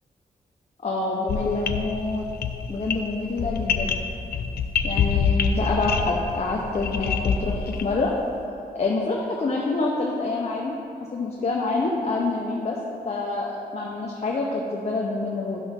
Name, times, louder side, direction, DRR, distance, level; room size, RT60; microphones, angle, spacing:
voice 1, 0.8-2.3 2.7-4.0 4.8-8.1 8.7-10.7 11.1-12.8 13.0-15.6, left 3 dB, 40° left, -2 dB, 0.9 m, -26 dB
sound 1, 1.3-8.0, left 6 dB, 75° left, 0.5 m, -26 dB
11.0 x 6.0 x 3.7 m, 2.6 s
wide cardioid pair, 115°, 17 cm